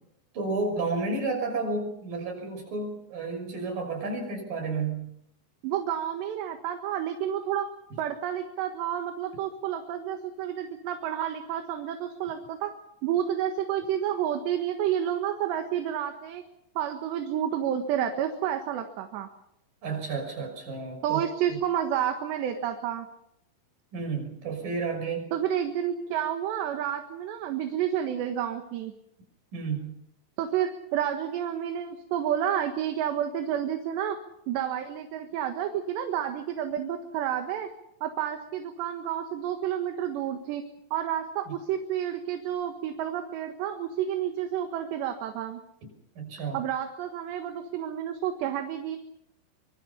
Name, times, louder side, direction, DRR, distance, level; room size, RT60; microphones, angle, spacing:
voice 1, 0.3-5.1 19.8-21.2 21.5-21.6 23.9-25.3 29.5-30.0 41.5-41.6 46.2-46.6, right 3 dB, 50° right, 3 dB, 7.5 m, -31 dB
voice 2, 5.6-7.7 8.0-12.7 13.0-16.4 16.8-19.3 21.0-23.1 25.3-28.9 30.4-34.2 34.5-37.7 38.0-45.6 46.5-49.0, right 10 dB, 75° right, 5 dB, 3.7 m, -30 dB
25.0 x 25.0 x 5.8 m, 0.76 s
omnidirectional pair, 5.1 m